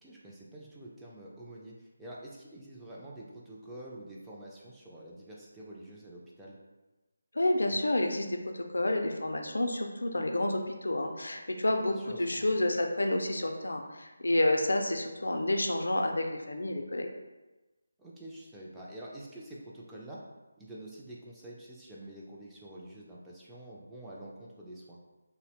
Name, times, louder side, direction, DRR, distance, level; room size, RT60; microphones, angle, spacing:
voice 1, 0.0-6.6 11.8-12.5 18.0-20.2 20.6-25.0, right 1 dB, 5° right, -6 dB, 0.3 m, -47 dB
voice 2, 7.3-17.1, left 1 dB, 85° left, 4 dB, 0.4 m, -29 dB
2.7 x 2.0 x 2.8 m, 1.1 s
figure-of-eight pair, 165°, 0 cm